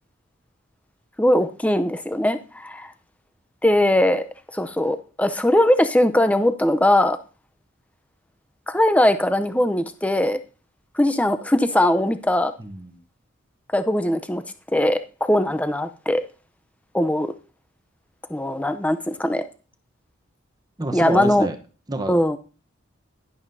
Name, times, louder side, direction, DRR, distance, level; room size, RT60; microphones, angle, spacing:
voice 1, 1.2-2.9 3.6-4.2 4.5-7.2 8.7-10.4 10.9-12.5 13.7-14.4 14.7-16.2 16.9-17.3 18.3-19.4 20.9-21.5 22.1-22.4, left 1 dB, 5° left, 10 dB, 0.6 m, -20 dB
voice 2, 12.6-13.0 20.8-21.6 21.9-22.4, right 1 dB, 20° right, 6 dB, 0.9 m, -28 dB
11.0 x 11.0 x 2.7 m, 0.36 s
head